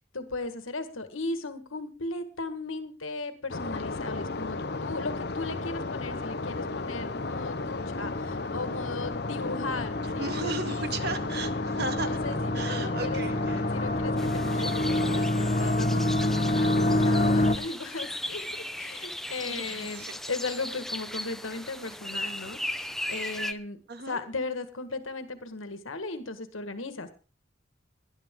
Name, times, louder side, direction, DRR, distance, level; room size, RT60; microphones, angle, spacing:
voice 1, 0.1-11.1 12.0-13.2 13.7-23.8 24.1-27.1, left 3 dB, 85° left, 9 dB, 1.7 m, -37 dB
sound 1, 3.5-15.2, left 3 dB, 55° left, 0.7 m, -34 dB
sound 2, 4.4-17.5, left 1 dB, 35° left, 1.5 m, -29 dB
voice 2, 10.2-12.2 12.5-13.6 19.5-20.2 23.9-24.2, right 3 dB, 55° right, 8 dB, 1.8 m, -35 dB
sound 3, 14.2-23.5, left 1 dB, ahead, 0.6 m, -37 dB
19.0 x 11.5 x 3.8 m, 0.34 s
head